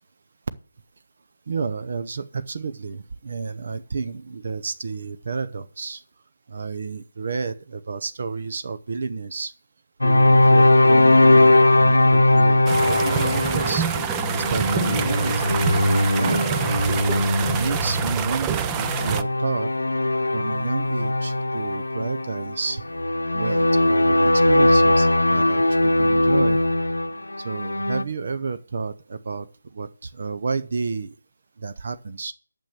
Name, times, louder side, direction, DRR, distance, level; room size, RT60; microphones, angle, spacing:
voice 1, 1.5-6.0 6.5-9.5 10.0-13.9 14.3-16.5 17.4-19.7 20.3-22.8 23.3-26.6 27.4-29.5 29.7-31.1 31.6-32.3, right 4 dB, 55° right, 11 dB, 0.7 m, -31 dB
sound 1, 10.0-28.0, left 1 dB, 85° left, 0.8 m, -19 dB
sound 2, 12.7-19.2, right 9 dB, 15° right, 0.5 m, -27 dB
8.9 x 7.0 x 7.5 m, 0.41 s
figure-of-eight pair, 155°, 0 cm